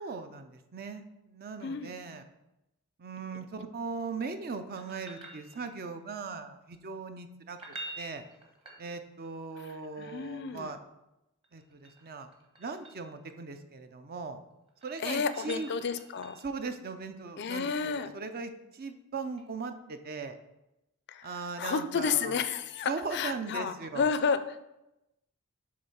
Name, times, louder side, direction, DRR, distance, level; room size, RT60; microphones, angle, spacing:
voice 1, 0.0-2.2 3.0-7.6 8.0-8.2 8.8-10.8 11.5-12.3 12.6-14.4 14.8-15.7 16.4-20.4 21.2-22.3 22.9-24.1, right 4 dB, 45° right, 8 dB, 0.6 m, -39 dB
voice 2, 1.6-1.9 9.6-10.7 15.0-16.4 17.4-18.1 21.1-21.3 21.6-24.6, left 5 dB, 50° left, 12 dB, 0.4 m, -31 dB
sound 1, 4.8-6.0 7.5-9.3 11.4-13.1 14.5-16.6 19.4-19.5, right 2 dB, 25° right, 1.3 m, -47 dB
7.6 x 3.8 x 5.5 m, 0.92 s
head